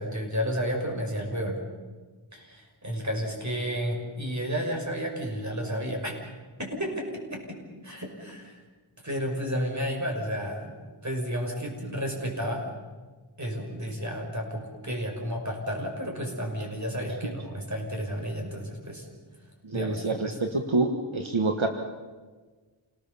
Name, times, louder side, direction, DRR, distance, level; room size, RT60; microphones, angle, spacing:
voice 1, 0.0-1.6 2.3-6.1 6.6-7.6 7.8-8.6 9.0-12.7 13.4-19.1 19.7-20.4, equal, 35° right, 1 dB, 6.2 m, -32 dB
voice 2, 19.6-21.7, right 3 dB, 80° right, 4 dB, 1.6 m, -27 dB
28.0 x 19.5 x 7.1 m, 1.4 s
wide cardioid pair, 60°, 46 cm